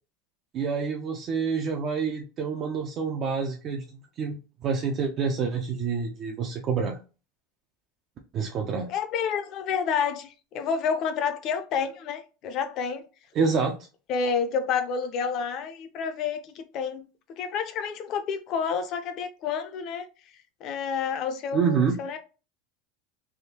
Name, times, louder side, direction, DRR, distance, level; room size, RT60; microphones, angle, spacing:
voice 1, 0.5-7.0 8.3-8.9 13.3-13.8 21.5-22.0, right 5 dB, 30° right, 0.4 m, -27 dB
voice 2, 8.9-13.0 14.1-20.1 20.6-22.2, left 6 dB, 40° left, 0.5 m, -29 dB
3.4 x 2.6 x 2.8 m
supercardioid pair, 160°, 0 cm